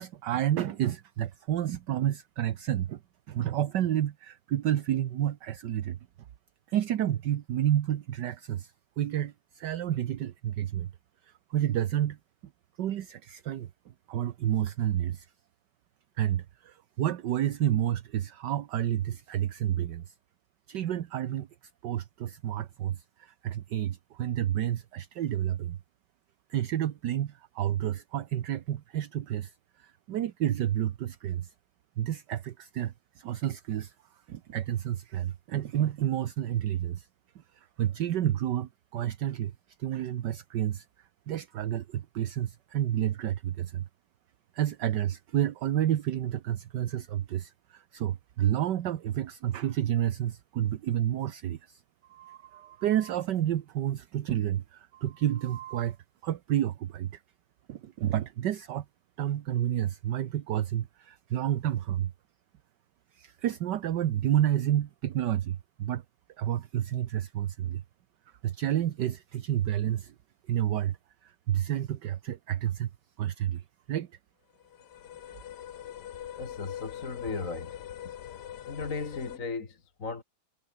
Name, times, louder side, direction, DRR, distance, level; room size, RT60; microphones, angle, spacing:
voice 1, 0.0-3.0 3.3-6.0 6.7-10.9 11.2-12.2 12.8-13.7 14.1-15.3 16.2-20.1 20.7-21.5 21.8-25.8 26.5-31.5 32.0-33.9 34.3-37.1 37.6-39.5 39.8-40.9 41.3-43.8 44.5-51.8 52.1-56.0 56.2-57.2 57.7-58.8 59.2-62.1 63.1-66.0 66.4-67.8 68.4-70.1 70.5-71.0 71.2-72.9 73.2-73.6 73.9-74.1, right 11 dB, 60° right, 1.4 m, -30 dB
sound 1, 74.6-79.4, left 10 dB, 55° left, 1.4 m, -43 dB
voice 2, 76.4-77.8 78.7-80.2, left 4 dB, 40° left, 2.5 m, -36 dB
omnidirectional pair, 2.4 m